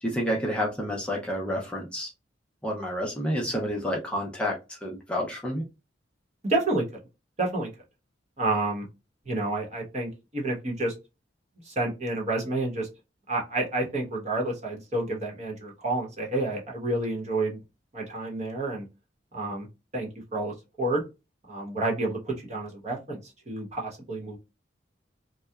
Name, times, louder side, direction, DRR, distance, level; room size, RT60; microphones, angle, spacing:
voice 1, 0.0-2.1 2.6-5.6, equal, 5° left, -2 dB, 0.5 m, -29 dB
voice 2, 6.4-6.8 7.4-7.7 8.4-8.8 9.3-10.9 11.7-12.9 13.3-17.6 17.9-18.9 19.3-19.7 19.9-21.0 21.5-23.2 23.5-24.4, right 2 dB, 40° right, -1 dB, 1.0 m, -29 dB
2.8 x 2.2 x 2.2 m, 0.26 s
head